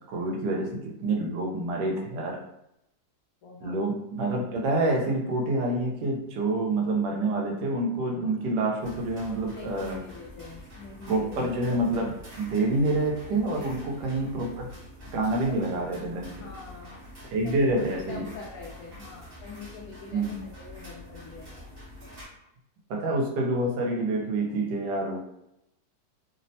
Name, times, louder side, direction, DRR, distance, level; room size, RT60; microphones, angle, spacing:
voice 1, 0.1-2.4 3.6-10.0 11.1-14.7 15.1-16.3 17.2-18.2 20.1-20.4 22.9-25.2, right 2 dB, 80° right, -1 dB, 1.2 m, -27 dB
voice 2, 3.4-3.8 9.5-11.4 13.5-14.1 16.4-17.0 17.4-21.7, left 4 dB, 70° left, -5 dB, 1.0 m, -44 dB
sound 1, 8.8-22.3, left 1 dB, 45° right, 0.8 m, -46 dB
3.3 x 2.0 x 2.6 m, 0.82 s
omnidirectional pair, 1.8 m